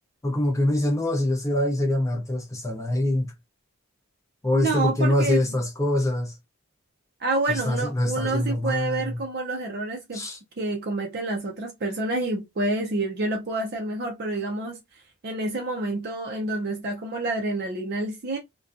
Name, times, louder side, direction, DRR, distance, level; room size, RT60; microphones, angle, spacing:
voice 1, 0.2-3.3 4.4-6.4 7.5-9.2 10.1-10.4, left 1 dB, 15° left, 0.5 m, -24 dB
voice 2, 4.5-5.4 7.2-10.3 10.6-18.4, right 2 dB, 45° right, 0.5 m, -28 dB
2.5 x 2.2 x 2.4 m
head